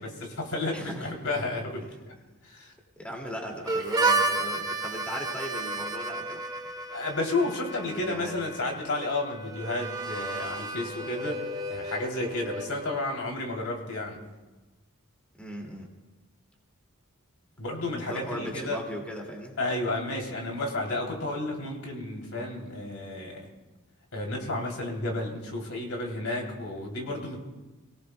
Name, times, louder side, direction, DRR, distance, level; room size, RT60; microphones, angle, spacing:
voice 1, 0.0-2.1 2.4-2.7 6.9-14.2 17.6-18.8 19.6-23.5 24.1-27.4, left 2 dB, 70° left, 0 dB, 3.2 m, -32 dB
voice 2, 0.7-1.1 3.0-6.4 7.8-8.4 15.4-15.9 18.0-19.6, equal, 5° left, 0 dB, 2.3 m, -38 dB
Harmonica, 3.7-13.3, right 3 dB, 20° right, 1.0 m, -32 dB
29.0 x 18.5 x 2.3 m, 1.2 s
head